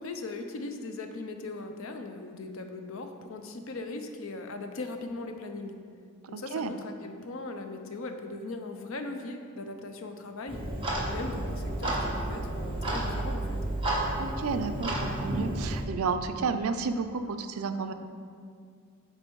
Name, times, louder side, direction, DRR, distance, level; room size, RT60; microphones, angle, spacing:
voice 1, 0.0-5.8 6.3-10.6 11.1-13.7, left 2 dB, 70° left, 6 dB, 0.6 m, -39 dB
voice 2, 6.2-6.7 14.2-17.9, right 4 dB, 85° right, 9 dB, 0.5 m, -31 dB
Clock, 10.5-15.8, right 1 dB, 25° right, 1.3 m, -31 dB
8.8 x 4.3 x 4.6 m, 2.2 s
head